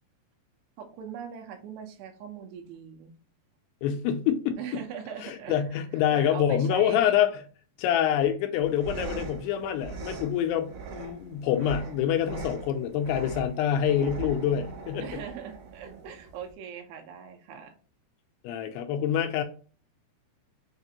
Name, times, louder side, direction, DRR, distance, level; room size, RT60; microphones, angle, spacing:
voice 1, 0.8-3.1 4.6-5.6 6.1-7.2 15.0-17.8, right 7 dB, 80° right, 2.8 m, -40 dB
voice 2, 3.8-4.5 5.2-7.4 7.8-15.1 18.4-19.4, left 9 dB, 85° left, 2.5 m, -26 dB
sound 1, 8.5-16.5, right 4 dB, 65° right, 2.7 m, -41 dB
6.5 x 2.5 x 2.8 m
omnidirectional pair, 4.9 m